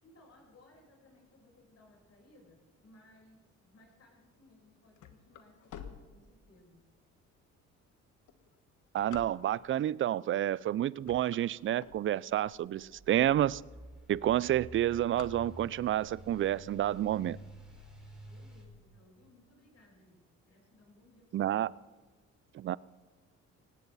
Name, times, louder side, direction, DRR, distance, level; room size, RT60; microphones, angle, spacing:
voice 1, 0.0-6.9 18.2-21.7, left 2 dB, 50° left, 6.7 m, -62 dB
sound 1, 4.5-6.8 7.4-7.5 8.1-9.8 10.5-10.7 11.0-12.5 13.0-13.1 13.3-13.4 13.7-14.1 14.3-16.0, left 9 dB, 80° left, 1.3 m, -49 dB
voice 2, 8.9-13.6 14.1-17.4 21.3-21.7 22.5-22.8, right 12 dB, 45° right, 0.4 m, -29 dB
sound 2, 12.3-18.6, equal, ahead, 4.7 m, -51 dB
19.0 x 17.0 x 4.1 m
cardioid pair, 90°, 30 cm